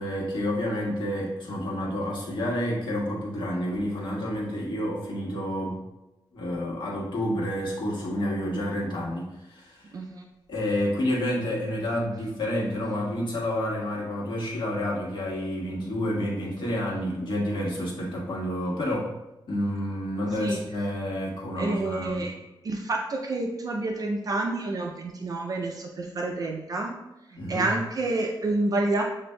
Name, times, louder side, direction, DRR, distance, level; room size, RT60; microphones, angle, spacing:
voice 1, 0.0-5.8 6.3-9.9 10.5-19.1 19.5-22.2 27.4-27.7, equal, 65° left, -5 dB, 1.4 m, -29 dB
voice 2, 9.9-10.2 20.3-20.6 21.6-22.3 22.6-26.9 27.3-29.0, right 2 dB, 45° right, 1 dB, 0.4 m, -29 dB
7.4 x 2.5 x 2.2 m, 0.96 s
wide cardioid pair, 125°, 9 cm